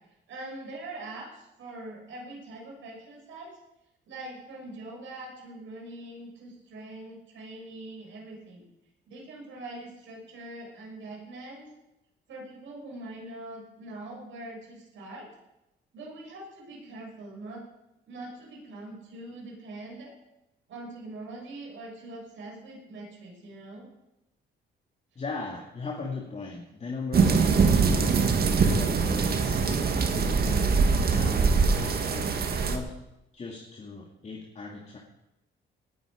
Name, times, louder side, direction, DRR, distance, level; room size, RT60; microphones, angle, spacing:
voice 1, 0.3-3.6 4.1-8.6 9.0-11.6 12.3-15.3 15.9-17.6 18.1-20.1 20.7-23.9, right 2 dB, 75° right, -1 dB, 6.7 m, -43 dB
voice 2, 25.2-30.7 31.1-32.9 33.3-35.0, left 3 dB, 35° left, -1 dB, 2.4 m, -38 dB
sound 1, 27.1-32.8, right 5 dB, 50° right, 1.8 m, -23 dB
19.0 x 11.0 x 5.1 m, 0.92 s
cardioid pair, 90°, 20 cm